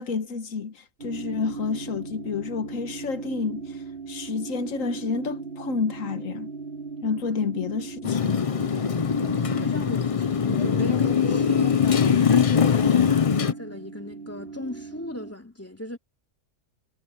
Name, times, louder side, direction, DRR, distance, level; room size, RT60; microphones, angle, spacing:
voice 1, 0.0-3.8 4.1-6.5 7.0-8.4, left 5 dB, 85° left, 1.6 m, -30 dB
sound 1, 1.0-15.3, right 5 dB, 45° right, 4.4 m, -38 dB
Motorcycle, 8.0-13.5, left 7 dB, 40° left, 0.5 m, -22 dB
voice 2, 9.2-16.0, left 1 dB, 10° left, 3.3 m, -37 dB
omnidirectional pair, 1.3 m